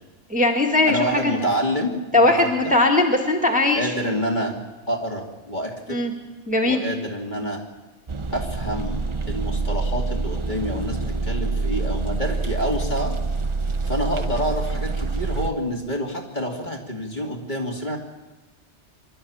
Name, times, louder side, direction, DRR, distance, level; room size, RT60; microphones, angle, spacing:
voice 1, 0.3-1.4 2.1-4.1 5.9-6.1 6.5-6.8, left 2 dB, 5° right, 2 dB, 1.8 m, -19 dB
voice 2, 0.9-2.2 2.6-2.7 3.8-4.6 4.9-6.0 6.6-7.6 8.3-13.1 13.9-18.0, equal, 40° left, 0 dB, 3.0 m, -27 dB
sound 1, 8.1-15.5, right 3 dB, 30° right, 0.7 m, -26 dB
25.0 x 12.5 x 8.8 m, 1.2 s
omnidirectional pair, 1.2 m